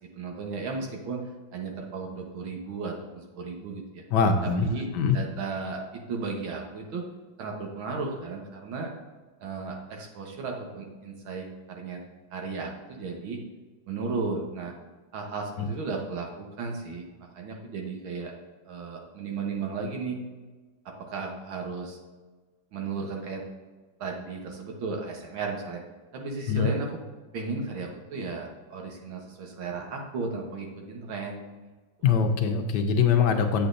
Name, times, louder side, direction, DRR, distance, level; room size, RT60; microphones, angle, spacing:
voice 1, 0.0-4.0 4.4-4.9 5.1-7.1 7.4-8.9 9.4-12.0 12.3-13.4 13.9-14.7 15.1-17.1 17.3-18.3 18.7-20.2 20.9-22.0 22.7-23.4 24.0-25.8 26.1-26.9 27.3-31.5, right 4 dB, 85° right, 1 dB, 2.0 m, -35 dB
voice 2, 4.1-4.7 4.9-5.2 15.6-15.7 26.5-26.7 32.0-33.7, left 6 dB, 65° left, 5 dB, 1.2 m, -23 dB
8.3 x 7.5 x 2.6 m, 1.3 s
omnidirectional pair, 2.2 m